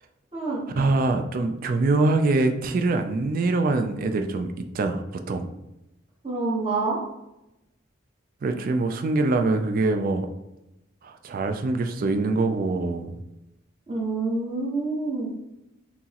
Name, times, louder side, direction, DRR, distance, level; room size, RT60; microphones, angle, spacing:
voice 1, 0.8-4.5 4.7-5.0 5.3-5.4 8.4-10.3 11.0-13.2, right 3 dB, 45° right, 6 dB, 0.4 m, -24 dB
voice 2, 6.2-7.0 13.9-15.3, right 3 dB, 30° right, -5 dB, 1.0 m, -27 dB
5.9 x 2.0 x 2.8 m, 0.90 s
head